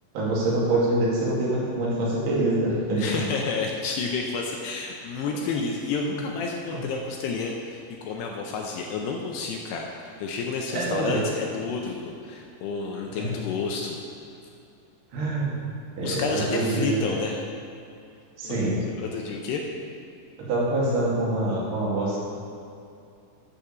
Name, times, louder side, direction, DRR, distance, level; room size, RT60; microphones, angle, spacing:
voice 1, 0.1-3.0 6.1-6.2 6.7-6.8 10.7-11.2 13.2-13.4 15.1-15.6 16.0-17.0 18.4-18.8 20.4-22.2, right 2 dB, 85° right, -6 dB, 4.7 m, -25 dB
voice 2, 3.0-14.0 16.0-17.4 18.4-19.6, left 4 dB, 80° left, 0 dB, 2.6 m, -30 dB
11.5 x 5.3 x 6.9 m, 2.5 s
omnidirectional pair, 5.3 m